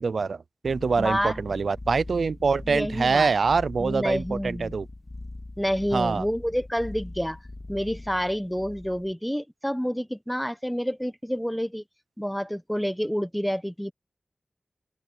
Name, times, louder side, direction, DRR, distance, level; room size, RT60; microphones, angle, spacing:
voice 1, 0.0-4.9 5.9-6.3, right 4 dB, 80° right, 0.5 m, -25 dB
sound 1, 0.6-9.1, left 2 dB, 30° left, 2.5 m, -41 dB
voice 2, 1.0-1.4 2.7-3.3 3.8-4.7 5.6-7.4 7.7-11.8 12.2-13.9, equal, ahead, 1.0 m, -28 dB
wide cardioid pair, 100°, 0 cm